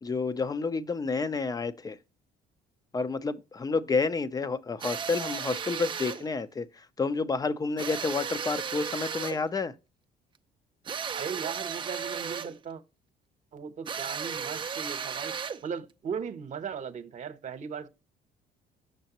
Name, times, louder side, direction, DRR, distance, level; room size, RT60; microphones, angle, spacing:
voice 1, 0.0-2.0 2.9-6.7 7.0-9.7, left 4 dB, 20° left, 0.6 m, -30 dB
sound 1, 4.8-6.3 7.8-9.5 10.9-12.6 13.9-15.7, right 6 dB, 30° right, 0.5 m, -35 dB
voice 2, 11.1-12.8 13.5-17.9, right 6 dB, 45° right, 1.0 m, -37 dB
6.6 x 6.3 x 2.9 m
cardioid pair, 110°, 17 cm